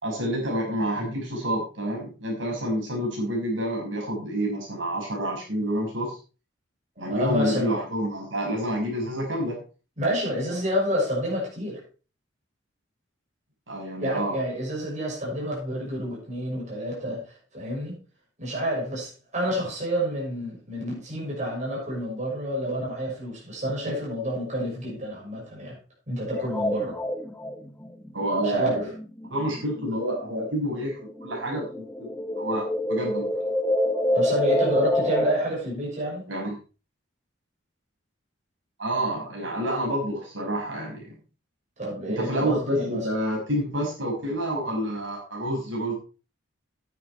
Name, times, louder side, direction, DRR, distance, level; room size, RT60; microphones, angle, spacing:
voice 1, 0.0-6.2 7.0-9.6 13.7-14.4 28.1-28.8 29.3-31.8 32.4-33.4 36.3-36.6 38.8-41.1 42.1-45.9, equal, 70° right, -2 dB, 5.9 m, -28 dB
voice 2, 7.0-7.7 10.0-11.8 14.0-17.2 17.5-18.0 18.4-25.8 26.1-27.0 28.4-28.8 34.1-36.2 41.8-43.0, equal, 40° right, -4 dB, 6.2 m, -28 dB
sound 1, 26.3-30.4 30.8-35.3, left 1 dB, 10° left, 1.2 m, -27 dB
10.0 x 9.9 x 4.4 m, 0.35 s
head